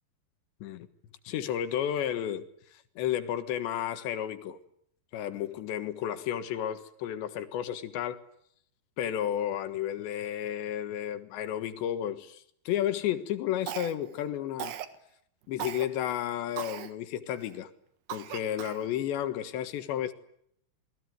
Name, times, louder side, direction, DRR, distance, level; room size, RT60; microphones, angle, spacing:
voice 1, 1.3-4.6 5.1-8.2 9.0-14.7 15.5-17.7 18.1-20.1, left 10 dB, 85° left, 3.8 m, -32 dB
Cough, 13.7-14.2 14.6-15.0 15.6-15.9 16.6-16.9 17.4-17.5 18.1-18.9, right 11 dB, 70° right, 3.3 m, -38 dB
28.0 x 21.5 x 9.5 m
omnidirectional pair, 5.0 m